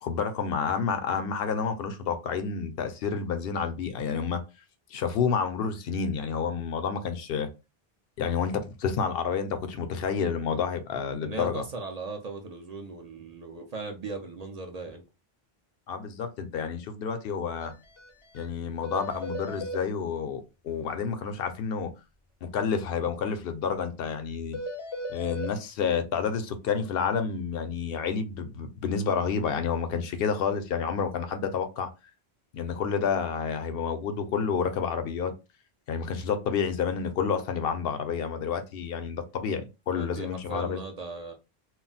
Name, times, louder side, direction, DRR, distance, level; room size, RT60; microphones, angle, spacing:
voice 1, 0.0-4.4 4.9-7.5 8.2-11.6 15.9-17.7 18.3-21.9 22.4-24.6 25.1-31.9 32.5-35.3 35.9-40.8, left 6 dB, 75° left, 0.8 m, -29 dB
voice 2, 11.2-15.0 39.9-41.3, right 3 dB, 50° right, 0.5 m, -38 dB
sound 1, 17.6-17.7 18.0-18.1 18.4-18.5 18.8-19.8 24.5-25.5, equal, 40° left, 0.5 m, -36 dB
2.3 x 2.0 x 3.9 m
omnidirectional pair, 1.0 m